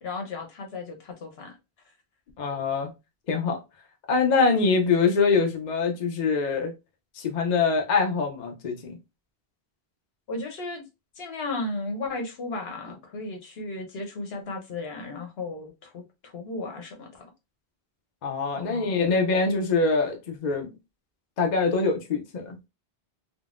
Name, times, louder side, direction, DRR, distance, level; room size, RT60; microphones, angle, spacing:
voice 1, 0.0-1.5 10.3-10.8 11.2-17.3 18.5-19.1, left 2 dB, 80° left, 1.0 m, -35 dB
voice 2, 2.4-2.9 3.3-3.6 4.1-6.7 7.2-9.0 18.2-20.7 21.4-22.6, left 4 dB, 50° left, 0.7 m, -24 dB
3.7 x 2.0 x 2.4 m
omnidirectional pair, 1.0 m